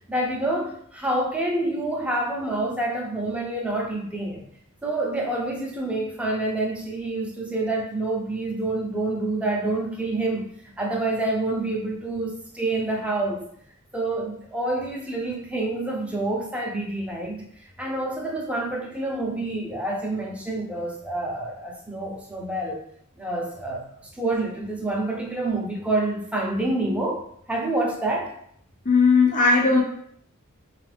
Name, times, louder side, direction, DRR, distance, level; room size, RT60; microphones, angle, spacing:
voice 1, 0.1-4.4 4.8-10.5 10.8-13.4 13.9-17.5 17.8-22.8 23.2-27.2 27.5-28.3, right 2 dB, 5° right, -2 dB, 0.6 m, -27 dB
voice 2, 28.9-29.8, left 4 dB, 35° left, -1 dB, 0.6 m, -17 dB
4.0 x 2.4 x 3.4 m, 0.67 s
head